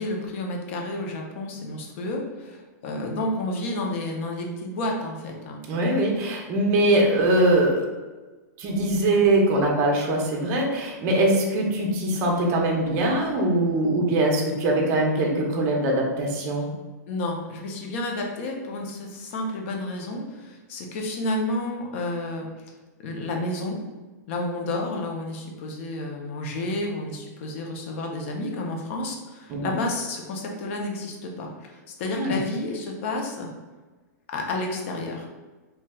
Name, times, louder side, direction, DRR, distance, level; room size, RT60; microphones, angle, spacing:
voice 1, 0.0-5.6 17.1-22.5 23.0-23.8 24.3-33.5 34.3-35.3, left 2 dB, 45° left, 1 dB, 0.6 m, -30 dB
voice 2, 5.7-7.9 8.6-16.7 29.5-29.8 32.2-32.4, right 1 dB, 30° right, 0 dB, 0.6 m, -22 dB
3.1 x 2.9 x 2.3 m, 1.3 s
hypercardioid pair, 155°, 9 cm